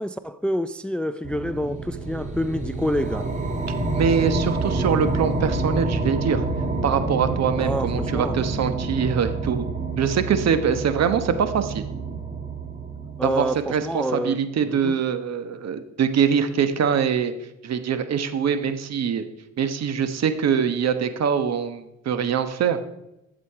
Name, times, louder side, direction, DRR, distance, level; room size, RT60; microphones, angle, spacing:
voice 1, 0.0-3.3 7.6-8.4 13.2-14.9, equal, 5° left, 0.4 m, -27 dB
sound 1, 1.2-13.8, right 3 dB, 25° right, 2.2 m, -28 dB
voice 2, 3.9-6.4 6.8-9.7 10.0-11.8 13.2-17.3 17.6-19.3 19.6-22.8, right 7 dB, 60° right, 1.1 m, -23 dB
11.5 x 7.5 x 4.8 m
cardioid pair, 90°, 30 cm